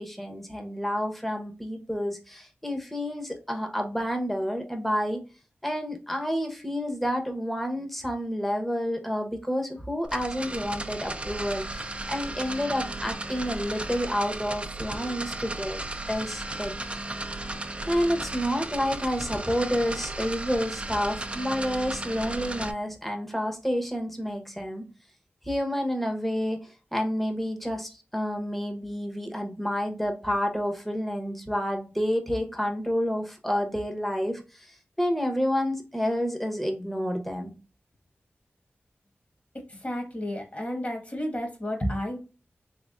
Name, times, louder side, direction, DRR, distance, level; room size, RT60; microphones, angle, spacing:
voice 1, 0.0-5.2 5.6-15.8 16.1-16.7 17.9-24.8 25.5-26.6 26.9-34.4 35.0-37.5, equal, 5° left, 4 dB, 1.1 m, -29 dB
sound 1, 10.0-22.7, right 2 dB, 25° right, 0.6 m, -35 dB
voice 2, 39.8-42.2, equal, 35° left, 2 dB, 1.6 m, -31 dB
3.5 x 3.4 x 2.5 m, 0.31 s
cardioid pair, 40°, 4 cm